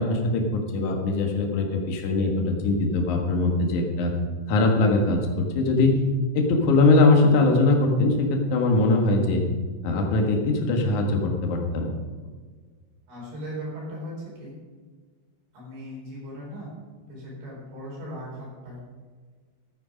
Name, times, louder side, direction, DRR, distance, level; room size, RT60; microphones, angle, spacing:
voice 1, 0.0-4.1 4.5-6.0 6.3-9.4 9.8-11.9, left 2 dB, 55° left, 1 dB, 2.4 m, -21 dB
voice 2, 13.1-14.5 15.5-16.7 17.0-18.8, equal, 60° right, -5 dB, 6.5 m, -38 dB
12.5 x 9.2 x 5.2 m, 1.5 s
omnidirectional pair, 5.1 m